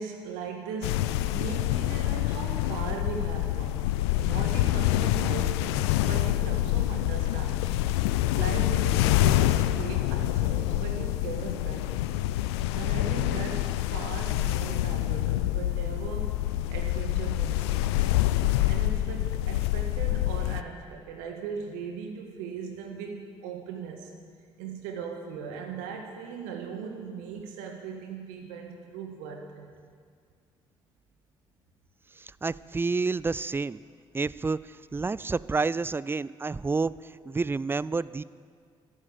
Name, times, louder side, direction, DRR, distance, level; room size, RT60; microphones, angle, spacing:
voice 1, 0.0-3.9 4.2-7.8 8.3-11.9 12.7-16.3 16.7-18.1 18.6-24.1 24.6-29.7, right 6 dB, 70° right, 3 dB, 1.8 m, -38 dB
sound 1, 0.8-20.6, left 15 dB, 75° left, 0.4 m, -26 dB
voice 2, 32.2-33.8 34.1-38.2, right 4 dB, 15° right, 19 dB, 0.4 m, -29 dB
12.0 x 11.0 x 8.4 m, 2.1 s
figure-of-eight pair, 45°, 14 cm